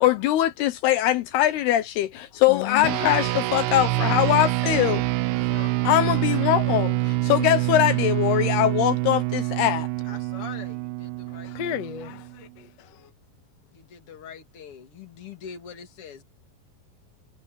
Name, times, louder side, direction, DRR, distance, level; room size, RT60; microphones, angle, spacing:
voice 1, 0.0-5.0 5.8-9.9, left 13 dB, 75° left, 2.8 m, -22 dB
voice 2, 2.3-3.2 4.8-4.9 5.3-5.7 11.3-13.1, left 10 dB, 55° left, 1.9 m, -35 dB
sound 1, 2.8-12.5, right 19 dB, 85° right, 2.7 m, -26 dB
voice 3, 10.0-11.9 13.7-16.2, left 7 dB, 40° left, 2.8 m, -43 dB
omnidirectional pair, 4.8 m